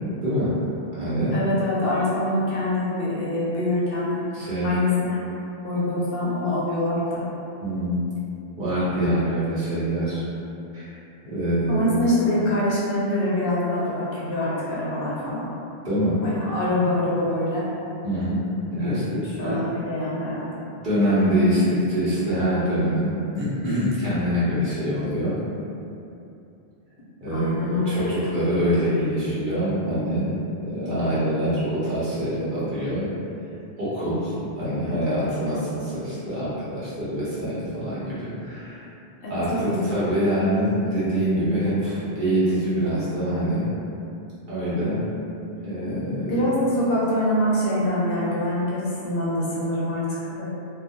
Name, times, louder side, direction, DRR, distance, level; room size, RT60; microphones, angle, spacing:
voice 1, 0.2-0.6 0.9-1.4 4.3-4.8 7.6-8.0 8.6-10.2 10.7-10.9 11.2-11.9 15.8-16.2 18.0-19.6 20.8-25.3 27.2-30.3 30.6-33.1 33.8-38.9 39.3-43.7 44.5-45.0 45.6-46.5, equal, 55° right, -11 dB, 0.9 m, -25 dB
voice 2, 1.3-4.1 4.6-5.2 5.6-7.2 11.7-15.5 16.2-17.7 19.4-20.5 27.3-28.1 39.2-39.8 46.3-50.5, left 1 dB, 65° left, -8 dB, 0.7 m, -25 dB
2.3 x 2.1 x 2.7 m, 2.7 s
omnidirectional pair, 1.1 m